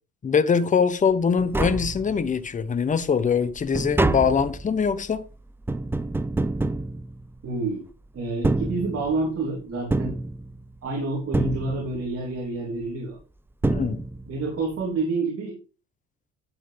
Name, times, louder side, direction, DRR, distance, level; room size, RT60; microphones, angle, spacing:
voice 1, 0.2-5.2 13.7-14.0, left 6 dB, 25° left, 0.9 m, -23 dB
Tap, 1.1-1.2 1.4-2.5 2.9-7.7 8.3-9.4 9.9-10.9 11.3-12.2 13.2-13.3 13.6-14.5 14.7-14.8, right 2 dB, 5° right, 0.4 m, -27 dB
voice 2, 7.4-7.8 8.1-10.1 10.8-13.2 14.3-15.6, right 3 dB, 45° right, 3.3 m, -28 dB
11.5 x 8.1 x 3.4 m
cardioid pair, 130°, 32 cm